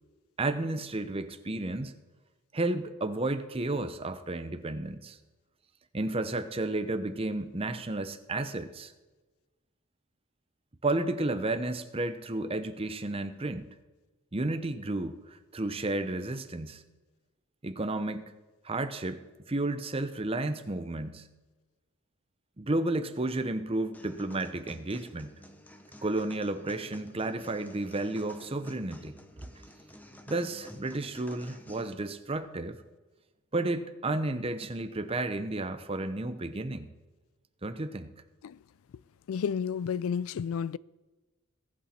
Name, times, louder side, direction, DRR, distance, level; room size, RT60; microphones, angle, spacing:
voice 1, 0.4-1.9 2.5-5.2 5.9-8.9 10.8-13.7 14.3-16.8 17.6-18.3 18.6-19.2 19.5-21.3 22.6-25.3 26.0-29.2 29.4-29.5 30.3-32.8 33.5-36.9 37.6-38.1, right 2 dB, 25° right, 0.7 m, -32 dB
sound 1, 23.9-31.9, equal, 10° left, 0.8 m, -51 dB
voice 2, 39.3-40.8, left 7 dB, 70° left, 0.3 m, -31 dB
21.0 x 8.7 x 4.3 m
head